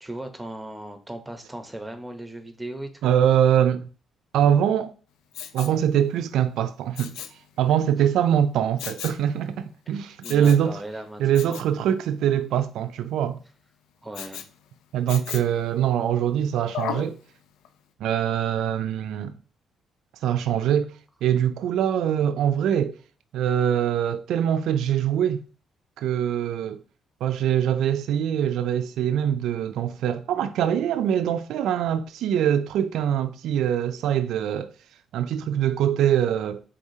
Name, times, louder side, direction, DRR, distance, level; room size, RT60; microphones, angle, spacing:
voice 1, 0.0-3.1 9.9-11.6 14.0-14.5, right 1 dB, 10° right, 0.9 m, -38 dB
voice 2, 3.0-3.9 4.3-4.9 5.5-7.2 7.6-10.8 11.2-13.4 14.9-17.2 18.0-19.3 20.2-20.9 21.2-23.0 23.3-25.4 26.0-26.8 27.2-34.7 35.1-36.6, right 9 dB, 80° right, 0.3 m, -23 dB
Respiratory sounds, 5.3-5.8 6.9-7.4 8.8-9.2 10.2-10.7 11.3-11.7 14.1-14.5 15.1-15.6 16.7-17.1 17.6-17.7, left 9 dB, 90° left, 0.4 m, -35 dB
4.8 x 3.8 x 2.7 m
cardioid pair, 90°, 0 cm